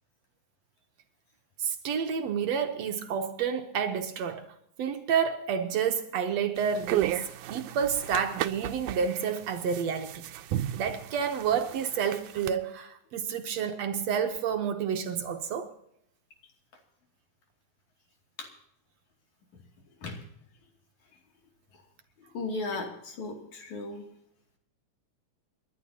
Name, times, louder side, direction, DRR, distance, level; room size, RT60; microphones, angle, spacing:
voice 1, 1.6-4.5 4.8-10.2 10.8-15.7, right 7 dB, 65° right, 2.0 m, -29 dB
sound 1, 6.6-12.5, right 12 dB, 85° right, 2.2 m, -34 dB
voice 2, 22.3-24.0, left 3 dB, 70° left, 3.9 m, -36 dB
29.5 x 11.5 x 2.8 m
omnidirectional pair, 3.5 m